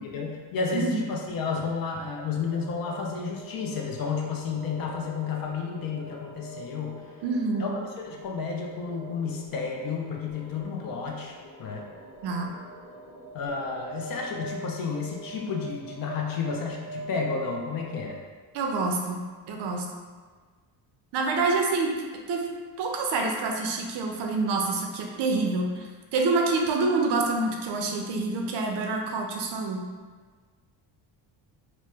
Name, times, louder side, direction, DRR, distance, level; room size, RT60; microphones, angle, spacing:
voice 1, 0.0-7.0 7.6-11.3 11.6-11.8 13.3-18.2, left 5 dB, 50° left, 0 dB, 0.5 m, -31 dB
voice 2, 0.7-1.1 7.2-7.7 12.2-12.5 18.5-19.2 19.5-19.9 21.1-21.9 22.3-22.5 22.8-29.8, right 3 dB, 65° right, 1 dB, 0.5 m, -27 dB
sound 1, 2.5-18.1, right 1 dB, 80° left, 0.9 m, -44 dB
2.9 x 2.0 x 3.3 m, 1.5 s
cardioid pair, 145°, 46 cm